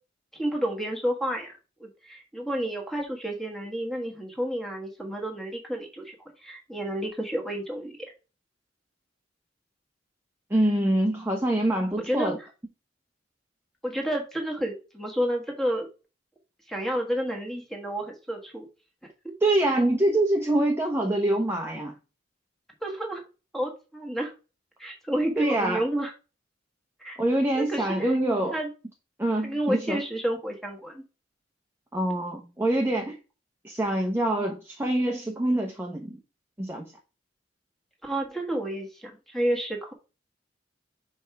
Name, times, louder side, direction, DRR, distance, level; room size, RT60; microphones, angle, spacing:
voice 1, 0.3-1.5 1.8-8.0 12.0-12.3 13.8-15.9 16.7-18.7 22.8-23.2 23.5-24.3 24.8-26.1 27.0-27.2 27.5-28.1 28.5-28.7 29.4-31.0 38.0-39.9, right 1 dB, ahead, 1.4 m, -30 dB
voice 2, 10.5-12.4 19.4-21.9 25.4-25.8 27.2-28.6 29.2-30.0 31.9-33.2 33.6-36.2 36.6-36.9, right 1 dB, 15° right, 0.9 m, -25 dB
5.3 x 3.6 x 5.7 m
head